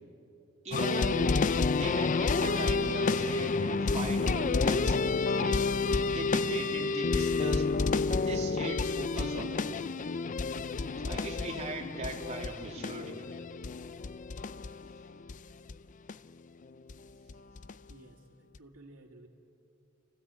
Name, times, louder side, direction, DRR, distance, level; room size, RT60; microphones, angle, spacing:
voice 1, 0.6-1.4 1.7-5.6 6.1-7.7 8.1-9.9 11.0-13.4, right 2 dB, 30° right, 0 dB, 2.7 m, -39 dB
sound 1, 0.7-15.4 15.7-15.8 16.1-16.2 16.9-17.0 17.3-17.9 18.5-18.6, left 4 dB, 35° left, 0.4 m, -30 dB
voice 2, 17.9-19.3, right 2 dB, 90° right, -6 dB, 2.7 m, -54 dB
29.5 x 16.0 x 8.5 m, 3.0 s
head